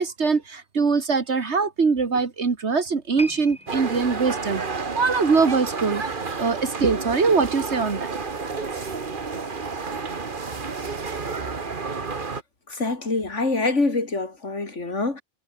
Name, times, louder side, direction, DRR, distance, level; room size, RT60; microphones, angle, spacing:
voice 1, 0.0-4.6 5.0-6.0 6.4-8.1, right 4 dB, 70° right, 2.1 m, -22 dB
sound 1, 3.2-6.5 6.8-7.0 7.7-7.8, equal, 5° left, 7.6 m, -42 dB
sound 2, 3.7-12.4, right 4 dB, 45° right, 1.7 m, -31 dB
voice 2, 12.7-15.2, left 3 dB, 85° left, 3.9 m, -25 dB
omnidirectional pair, 1.2 m